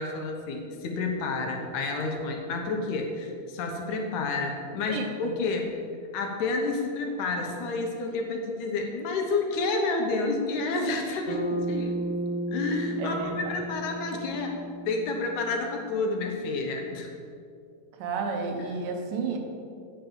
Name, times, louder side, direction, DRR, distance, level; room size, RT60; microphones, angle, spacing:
voice 1, 0.0-5.7 6.1-12.0 12.5-17.1, left 3 dB, 70° left, 2 dB, 2.2 m, -30 dB
voice 2, 4.9-5.3 13.0-13.5 18.0-19.4, right 4 dB, 85° right, 3 dB, 2.7 m, -32 dB
Bass guitar, 11.3-15.6, right 1 dB, 15° left, 1.7 m, -33 dB
9.1 x 5.4 x 7.2 m, 2.4 s
omnidirectional pair, 3.8 m